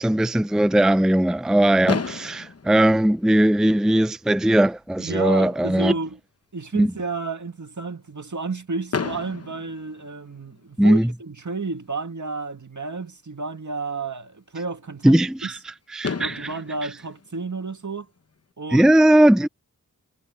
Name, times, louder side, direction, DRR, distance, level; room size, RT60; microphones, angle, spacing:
voice 1, 0.0-5.9 6.7-6.9 10.8-11.1 15.0-15.6 15.9-16.5 18.7-19.5, right 1 dB, ahead, 0.5 m, -18 dB
Fireworks, 1.9-3.9 4.7-4.8 5.0-5.2 5.5-5.6 8.9-10.7 12.4-12.5 15.6-15.7 16.0-18.3, left 5 dB, 50° left, 0.9 m, -33 dB
voice 2, 5.0-6.2 6.5-15.5 16.2-18.1 18.6-18.9, right 3 dB, 65° right, 2.1 m, -31 dB
wide cardioid pair, 60°, 32 cm